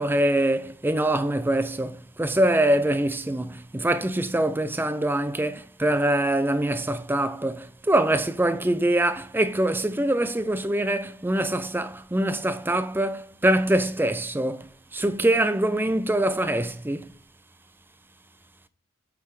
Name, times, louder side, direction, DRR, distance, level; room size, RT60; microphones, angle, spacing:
voice 1, 0.0-17.1, right 1 dB, 10° right, 0.5 m, -24 dB
8.7 x 3.6 x 4.8 m
head